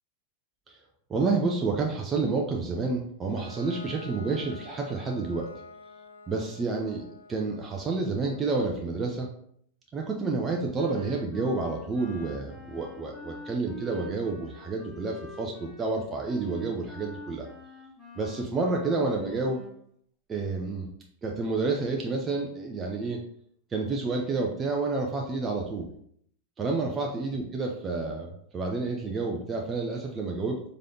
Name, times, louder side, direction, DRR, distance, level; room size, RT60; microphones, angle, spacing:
voice 1, 1.1-5.5 6.3-9.3 9.9-17.5 18.2-19.6 20.3-20.9 21.2-23.2 23.7-25.9 26.6-30.6, right 3 dB, 20° right, 0 dB, 0.6 m, -29 dB
Bowed string instrument, 3.3-8.9, left 4 dB, 70° left, 0.5 m, -48 dB
Wind instrument woodwind instrument, 10.7-19.7, right 2 dB, ahead, 1.7 m, -45 dB
4.9 x 3.8 x 2.8 m, 0.66 s
figure-of-eight pair, 90°, 0 cm